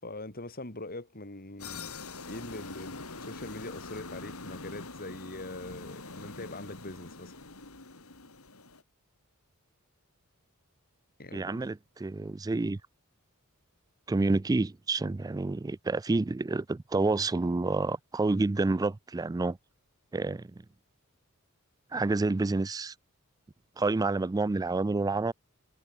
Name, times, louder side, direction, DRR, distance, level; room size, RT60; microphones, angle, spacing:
voice 1, 0.0-2.0 2.3-7.4 11.2-11.7, left 2 dB, 45° left, 5.6 m, -42 dB
sound 1, 1.6-8.8, left 3 dB, 75° left, 3.4 m, -44 dB
voice 2, 11.3-12.8 14.1-19.6 20.1-20.5 21.9-22.9 23.8-25.3, right 3 dB, 15° right, 0.3 m, -28 dB
head